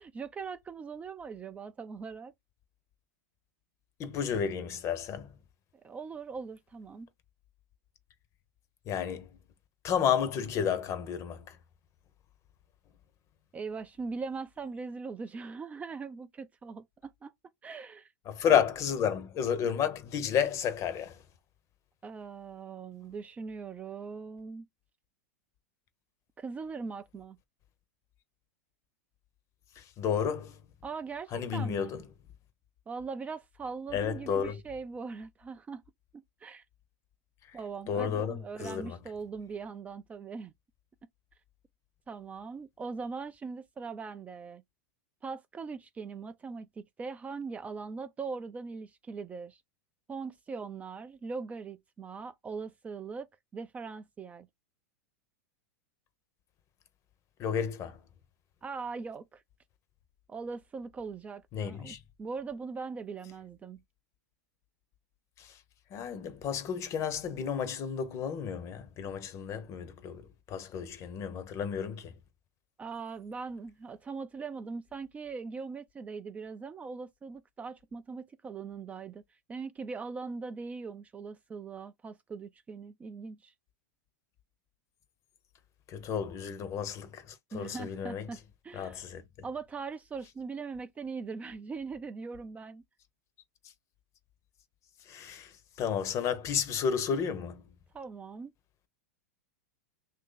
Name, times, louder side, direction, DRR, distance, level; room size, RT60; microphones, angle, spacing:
voice 1, 0.0-2.3 5.8-7.1 13.5-17.3 17.6-18.1 18.4-18.7 22.0-24.6 26.4-27.4 30.8-31.9 32.9-35.8 36.1-36.6 37.5-40.5 42.1-44.6 45.2-49.6 50.1-54.5 58.6-59.4 60.3-63.8 72.8-79.2 79.5-83.5 87.5-88.4 88.6-89.0 89.4-92.8 97.9-98.5, right 4 dB, 15° right, 0.4 m, -41 dB
voice 2, 4.0-5.3 8.9-9.3 9.8-11.4 18.3-21.1 29.8-30.5 31.3-32.0 33.9-34.6 37.9-39.0 57.4-58.0 61.5-62.0 65.4-65.5 65.9-70.2 70.5-72.1 85.9-87.2 87.5-88.3 88.7-89.2 95.1-95.5 95.8-97.6, left 8 dB, 35° left, 0.8 m, -31 dB
2.9 x 2.6 x 3.8 m
hypercardioid pair, 120°, 9 cm